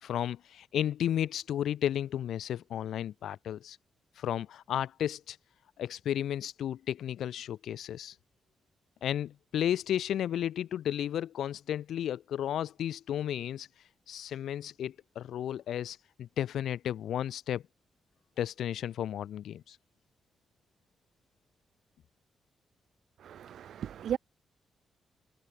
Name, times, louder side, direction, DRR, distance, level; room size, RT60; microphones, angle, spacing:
voice 1, 0.0-3.8 4.2-5.4 5.8-8.1 9.0-13.7 14.1-17.6 18.4-19.8, left 10 dB, 85° left, 1.5 m, -33 dB
voice 2, 23.2-24.2, right 9 dB, 75° right, 2.3 m, -35 dB
cardioid pair, 105°, 0 cm